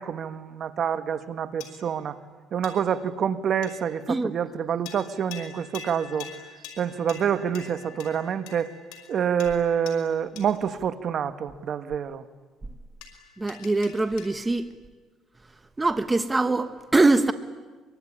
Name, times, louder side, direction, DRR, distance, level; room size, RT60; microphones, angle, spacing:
voice 1, 0.0-2.2 2.5-6.3 6.8-8.7 9.1-12.2, right 8 dB, 50° right, 1.5 m, -27 dB
sound 1, 1.6-2.1 2.6-3.1 3.6-4.1 4.8-10.7 13.0-14.6, left 7 dB, 80° left, 5.5 m, -45 dB
voice 2, 13.4-14.7 15.8-17.3, right 2 dB, 15° right, 1.2 m, -23 dB
24.0 x 24.0 x 9.9 m
cardioid pair, 100°, 0 cm